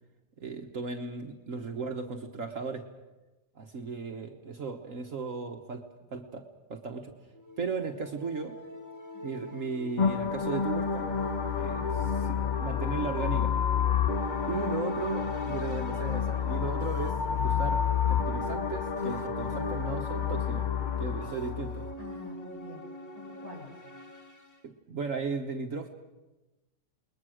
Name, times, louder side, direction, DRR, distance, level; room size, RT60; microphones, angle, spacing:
voice 1, 0.4-2.9 3.6-5.8 6.1-7.1 7.6-8.6 9.2-11.1 11.5-13.5 14.5-20.7 21.0-21.8 24.6-25.9, right 4 dB, 55° right, 4 dB, 1.6 m, -36 dB
sound 1, 7.3-24.6, equal, 10° left, 1.7 m, -45 dB
voice 2, 9.1-9.5 22.0-22.9 23.1-23.7, left 2 dB, 70° left, -2 dB, 7.4 m, -47 dB
sound 2, 10.0-21.9, left 7 dB, 35° left, 0.8 m, -29 dB
29.0 x 20.5 x 6.4 m, 1.1 s
omnidirectional pair, 1.7 m